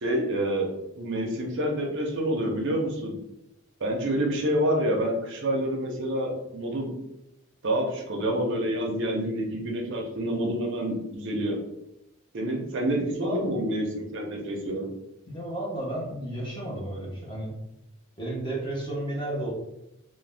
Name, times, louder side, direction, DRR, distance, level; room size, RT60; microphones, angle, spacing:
voice 1, 0.0-0.7 1.0-3.1 3.8-6.9 7.6-11.6 12.3-14.9, right 1 dB, 55° right, 1 dB, 0.5 m, -27 dB
voice 2, 15.3-17.5 18.2-19.5, right 1 dB, 20° left, -4 dB, 0.7 m, -32 dB
2.5 x 2.1 x 3.3 m, 0.86 s
head